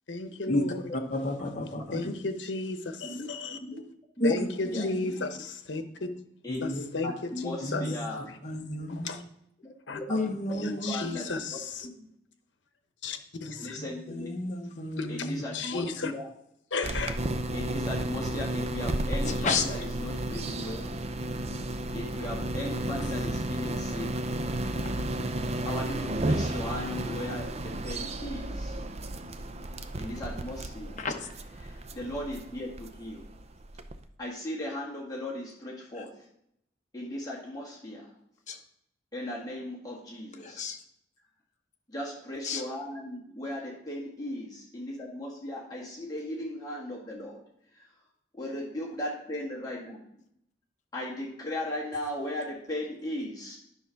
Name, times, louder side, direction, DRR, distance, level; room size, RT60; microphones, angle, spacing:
voice 1, 0.1-0.9 1.9-3.6 4.2-5.8 6.6-8.4 8.9-9.2 9.9-10.0 10.5-11.9 13.0-13.8 14.6-16.1 16.7-17.2, left 3 dB, 85° left, 8 dB, 0.9 m, -34 dB
voice 2, 0.9-2.0 4.2-4.3 4.7-4.9 6.5-6.8 7.6-7.9 8.4-9.2 10.1-11.0 13.8-15.4 19.2-19.6 31.0-31.3 35.9-36.0 38.5-38.6 40.4-40.8 42.4-42.6, left 2 dB, 40° left, 3 dB, 1.0 m, -31 dB
voice 3, 6.4-8.2 9.9-10.2 10.5-11.4 11.8-11.9 13.6-14.4 15.1-16.2 17.5-21.0 21.9-24.1 25.7-28.7 30.0-30.9 31.6-33.2 34.2-36.1 36.9-38.1 39.1-40.7 41.9-47.4 48.4-50.0 50.9-53.6, left 1 dB, 20° left, -4 dB, 1.9 m, -37 dB
sound 1, 16.8-34.0, right 1 dB, 35° right, 0.5 m, -33 dB
10.0 x 4.1 x 5.8 m, 0.75 s
head